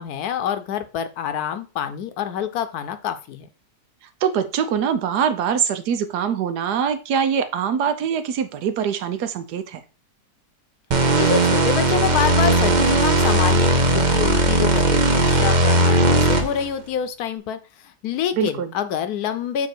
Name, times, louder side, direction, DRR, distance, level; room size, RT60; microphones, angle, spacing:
voice 1, 0.0-3.5 11.1-19.7, left 8 dB, 75° left, 10 dB, 1.2 m, -27 dB
voice 2, 4.2-9.8 18.3-18.7, right 7 dB, 90° right, 10 dB, 1.3 m, -23 dB
sound 1, 10.9-16.7, right 1 dB, 40° right, 0.6 m, -18 dB
7.4 x 2.9 x 4.4 m, 0.33 s
omnidirectional pair, 1.7 m